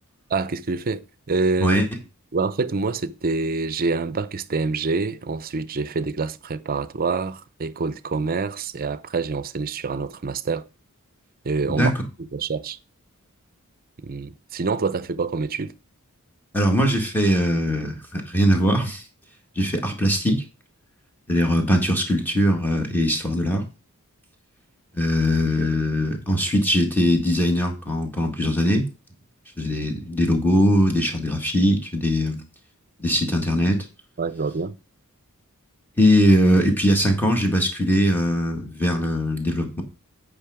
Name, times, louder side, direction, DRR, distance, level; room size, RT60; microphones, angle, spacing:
voice 1, 0.3-1.9 2.3-10.6 11.4-11.9 12.2-12.8 14.0-15.7 34.2-34.8, right 4 dB, 40° right, 0.6 m, -26 dB
voice 2, 16.5-19.0 19.6-20.4 21.3-23.6 24.9-28.9 29.6-32.4 33.0-33.8 36.0-39.8, equal, 10° left, 1.8 m, -21 dB
8.8 x 5.3 x 5.0 m
head